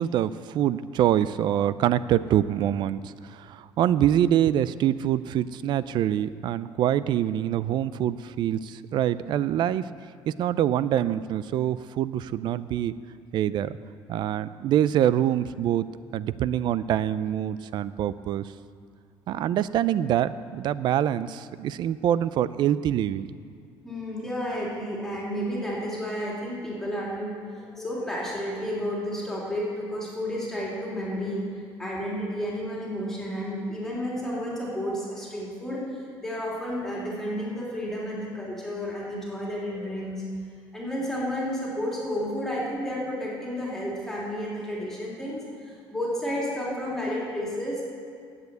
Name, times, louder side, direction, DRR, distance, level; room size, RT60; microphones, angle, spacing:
voice 1, 0.0-9.9 10.3-12.9 13.3-13.8 14.1-15.8 16.1-18.4 19.3-23.3, right 11 dB, 55° right, 16 dB, 0.4 m, -25 dB
voice 2, 23.8-31.4 31.8-40.2 40.7-47.8, equal, 5° left, -5 dB, 3.1 m, -31 dB
9.3 x 8.2 x 8.2 m, 2.1 s
cardioid pair, 125°, 9 cm